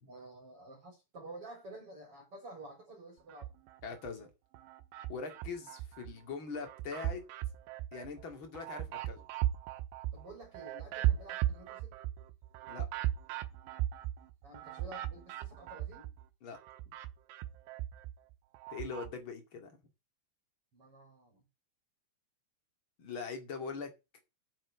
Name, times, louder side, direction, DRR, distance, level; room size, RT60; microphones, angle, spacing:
voice 1, 0.1-3.5 10.1-12.0 14.4-16.1 20.7-21.5, right 2 dB, 30° right, 3.6 m, -51 dB
sound 1, 3.3-4.1 4.5-6.1 6.5-16.3 16.5-19.1, right 13 dB, 80° right, 3.0 m, -37 dB
voice 2, 3.8-4.3 5.1-7.2 7.9-9.3 12.7-12.9 16.4-16.6 16.9-17.0 18.7-19.8 23.0-23.9, left 5 dB, 40° left, 1.9 m, -42 dB
8.0 x 7.6 x 8.2 m
omnidirectional pair, 5.7 m